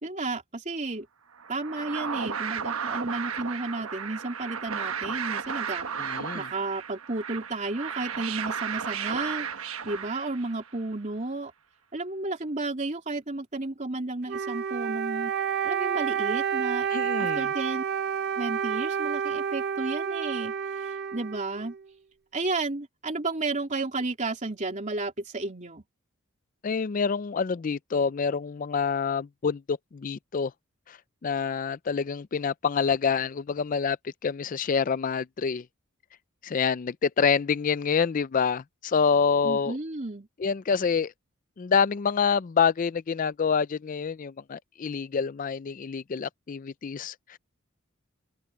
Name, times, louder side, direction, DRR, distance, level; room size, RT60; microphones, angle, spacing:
voice 1, 0.0-1.1 1.5-5.9 6.3-11.5 11.9-15.3 15.6-16.9 17.2-17.8 18.4-21.7 22.3-25.8 39.4-40.3, right 2 dB, 35° right, 3.1 m, -32 dB
sound 1, 1.4-10.8, right 7 dB, 80° right, 1.2 m, -34 dB
voice 2, 6.0-6.5 16.9-17.4 26.6-30.5 30.9-31.0 31.2-35.7 36.4-39.8 40.4-41.1 41.6-47.4, left 6 dB, 40° left, 0.4 m, -27 dB
Wind instrument woodwind instrument, 14.3-21.8, right 7 dB, 50° right, 0.6 m, -29 dB
open air
head